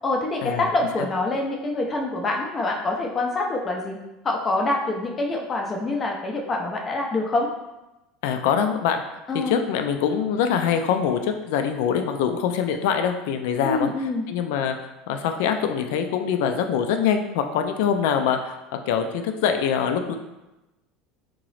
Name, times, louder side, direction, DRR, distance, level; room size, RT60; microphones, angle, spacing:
voice 1, 0.0-4.0 4.2-7.5 9.3-9.6 13.6-14.3, left 2 dB, 20° left, 1 dB, 0.5 m, -25 dB
voice 2, 8.2-9.0 9.3-14.8 15.1-18.6 18.9-20.2, left 7 dB, 75° left, 6 dB, 0.4 m, -24 dB
3.7 x 2.9 x 3.1 m, 0.99 s
cardioid pair, 150°, 0 cm